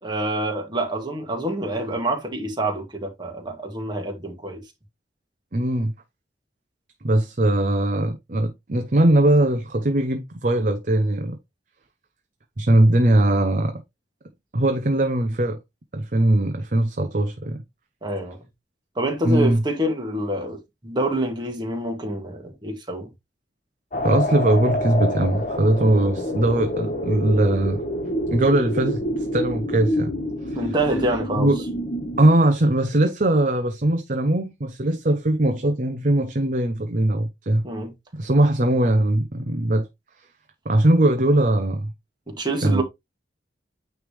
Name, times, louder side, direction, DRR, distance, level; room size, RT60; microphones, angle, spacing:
voice 1, 0.0-4.6 18.0-18.4 19.0-23.1 30.6-31.5 37.6-37.9 42.3-42.8, right 1 dB, 25° right, 1.8 m, -27 dB
voice 2, 5.5-5.9 7.0-11.4 12.6-13.8 14.5-15.6 15.9-17.6 19.2-19.6 24.0-27.8 28.3-30.1 30.5-30.7 31.4-31.6 32.2-37.6 38.1-39.9 40.7-41.9 42.6-42.8, right 1 dB, 45° right, 0.7 m, -20 dB
sound 1, 23.9-32.3, equal, 40° left, 1.4 m, -27 dB
9.3 x 3.4 x 3.3 m
head